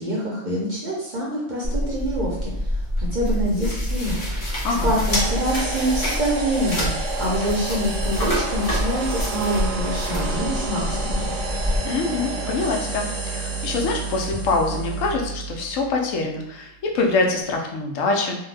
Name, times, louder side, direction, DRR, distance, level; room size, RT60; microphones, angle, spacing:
voice 1, 0.0-4.2 4.8-11.3, right 1 dB, 50° right, -4 dB, 0.5 m, -26 dB
sound 1, 1.6-11.8, equal, 30° left, 0.9 m, -26 dB
sound 2, 5.1-15.1, right 3 dB, 70° right, 0.9 m, -31 dB
sound 3, 10.2-17.3, right 4 dB, 50° left, 0.4 m, -34 dB
voice 2, 11.8-18.4, left 3 dB, 80° left, 1 dB, 1.0 m, -24 dB
2.6 x 2.1 x 3.2 m, 0.79 s
omnidirectional pair, 1.3 m